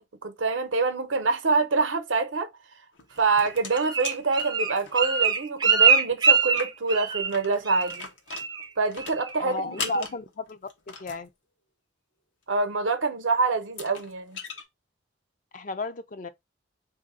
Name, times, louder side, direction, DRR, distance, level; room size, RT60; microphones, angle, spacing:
voice 1, 0.0-2.5 3.2-8.1 8.8-10.1 12.5-14.4, right 4 dB, 90° right, 0.7 m, -26 dB
sound 1, 2.9-5.3 5.6-5.7 5.9-6.0 6.4-11.3 13.0-13.1 13.6-14.6, left 5 dB, 80° left, 0.9 m, -40 dB
Bird, 3.3-7.4 7.7-8.0 8.3-8.7 9.0-9.4 9.8-9.9, right 5 dB, 20° right, 0.4 m, -23 dB
voice 2, 9.4-10.6 10.9-11.3 15.5-16.3, left 2 dB, 40° left, 0.4 m, -33 dB
3.3 x 2.6 x 3.7 m
head